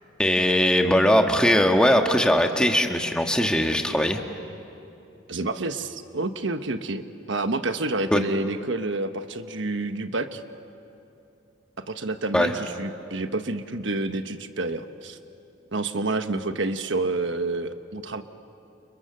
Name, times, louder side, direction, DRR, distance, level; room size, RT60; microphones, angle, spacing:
voice 1, 0.2-4.2 8.1-8.2 12.3-12.5, equal, 5° left, 4 dB, 1.5 m, -20 dB
voice 2, 5.3-7.0 7.3-10.4 11.9-15.2 15.7-18.2, right 2 dB, 75° right, 8 dB, 1.3 m, -28 dB
30.0 x 29.0 x 6.8 m, 2.9 s
head